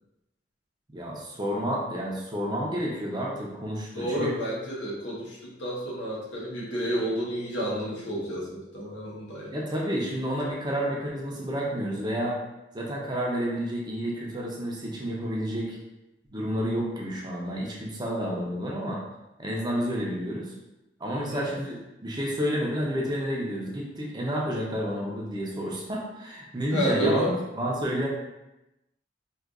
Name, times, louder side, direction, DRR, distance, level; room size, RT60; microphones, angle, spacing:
voice 1, 0.9-4.3 9.5-12.4 12.7-15.8 16.3-19.0 19.4-20.5 21.0-28.1, equal, 25° right, -3 dB, 0.7 m, -30 dB
voice 2, 3.9-9.6 21.1-21.5 26.7-27.3, equal, 80° left, -5 dB, 1.2 m, -30 dB
4.5 x 2.5 x 2.5 m, 0.93 s
head